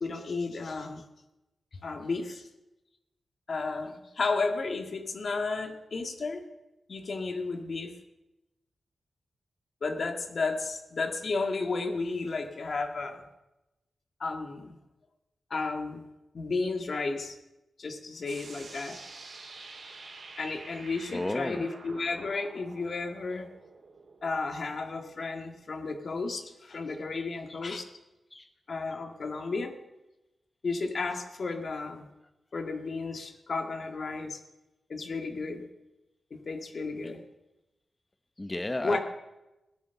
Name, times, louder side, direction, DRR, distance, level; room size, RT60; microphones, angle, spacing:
voice 1, 0.0-1.0 1.8-2.5 3.5-6.4 6.9-7.9 9.8-13.2 14.2-14.8 15.5-16.0 16.3-17.4 17.8-19.1 20.4-23.5 24.2-27.9 28.7-29.7 30.6-32.1 32.5-34.4 34.9-35.7 36.3-37.2 38.8-39.0, left 3 dB, 65° left, 5 dB, 1.7 m, -33 dB
sound 1, 18.3-25.8, right 3 dB, 75° right, 3.1 m, -49 dB
voice 2, 21.1-21.7 27.1-27.6 28.3-28.5 38.4-39.0, left 2 dB, 25° left, 8 dB, 0.9 m, -33 dB
17.0 x 10.0 x 7.0 m, 0.99 s
cardioid pair, 55°, 0 cm